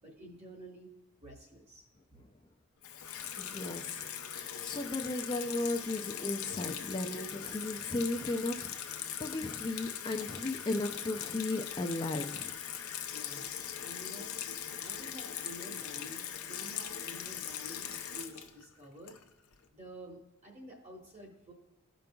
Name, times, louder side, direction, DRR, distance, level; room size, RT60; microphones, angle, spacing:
voice 1, 0.0-0.9 1.2-1.8 13.1-14.3 14.8-19.2 19.7-21.5, equal, 30° right, -1 dB, 1.2 m, -50 dB
Water tap faucet / Sink (filling or washing), 2.8-19.5, left 9 dB, 80° left, 0.6 m, -40 dB
voice 2, 3.4-4.0 4.3-12.5, left 2 dB, 20° left, 3 dB, 0.3 m, -36 dB
14.0 x 5.2 x 2.3 m, 0.89 s
head